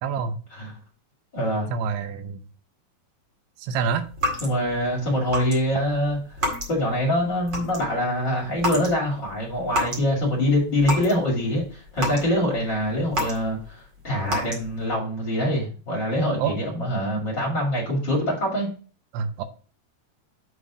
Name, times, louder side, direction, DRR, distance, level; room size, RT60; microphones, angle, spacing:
voice 1, 0.0-0.4 1.7-2.4 3.6-4.1 16.4-16.5 19.1-19.4, right 6 dB, 85° right, 9 dB, 2.9 m, -26 dB
voice 2, 1.3-1.7 4.4-18.7, equal, 35° left, -3 dB, 2.3 m, -24 dB
sound 1, 4.1-4.8 5.3-5.6 5.8-7.0 7.3-8.0 8.6-8.9 9.3-10.1 10.5-11.2 11.6-13.7 14.3-14.9, equal, 35° right, 2.0 m, -29 dB
8.2 x 4.0 x 4.8 m, 0.38 s
omnidirectional pair, 4.8 m